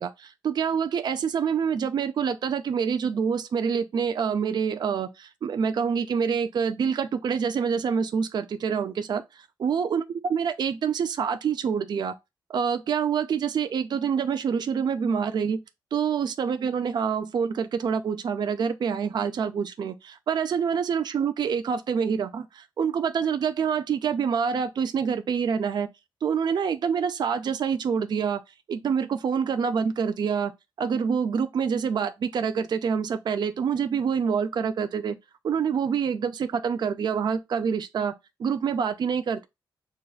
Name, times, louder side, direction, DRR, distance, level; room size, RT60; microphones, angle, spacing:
voice 1, 0.0-12.1 12.5-15.6 15.9-25.9 26.2-28.4 28.7-30.5 30.8-35.2 35.4-38.1 38.4-39.5, right 6 dB, 55° right, 0.4 m, -26 dB
6.2 x 2.3 x 2.3 m
wide cardioid pair, 130°, 9 cm